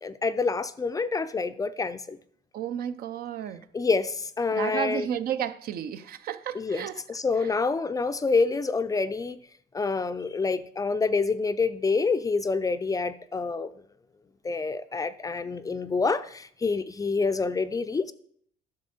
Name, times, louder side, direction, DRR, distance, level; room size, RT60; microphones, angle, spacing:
voice 1, 0.0-2.2 3.7-5.1 6.6-9.4 9.7-13.7 14.4-18.1, left 4 dB, 20° left, 12 dB, 0.4 m, -27 dB
voice 2, 2.5-3.7 4.5-7.0 7.4-7.5, right 9 dB, 60° right, 12 dB, 0.6 m, -32 dB
10.5 x 6.6 x 4.3 m, 0.64 s
cardioid pair, 110°, 17 cm